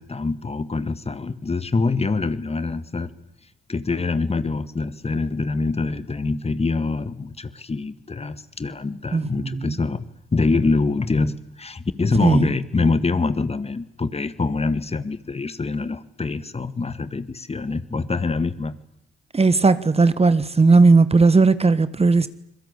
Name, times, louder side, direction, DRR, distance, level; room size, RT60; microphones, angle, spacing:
voice 1, 0.0-3.1 3.7-18.8, left 3 dB, 30° left, 1.9 m, -25 dB
voice 2, 9.1-9.7 12.2-12.5 19.3-22.3, right 3 dB, 30° right, 1.4 m, -16 dB
26.0 x 22.0 x 8.4 m
hypercardioid pair, 50°, 21 cm